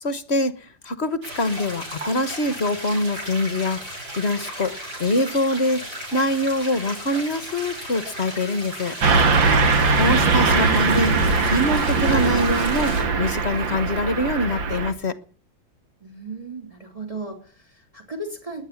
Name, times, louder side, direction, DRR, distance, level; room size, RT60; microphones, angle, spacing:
voice 1, 0.0-3.8 4.2-4.7 5.0-8.9 10.0-11.1 11.4-15.2, left 1 dB, 40° left, 1.3 m, -24 dB
sound 1, 1.2-13.0, right 1 dB, 55° right, 8.8 m, -35 dB
Car passing by / Truck, 9.0-14.9, right 4 dB, 85° right, 2.5 m, -20 dB
voice 2, 16.0-18.6, right 2 dB, 15° right, 4.0 m, -36 dB
20.0 x 10.0 x 7.1 m
omnidirectional pair, 2.0 m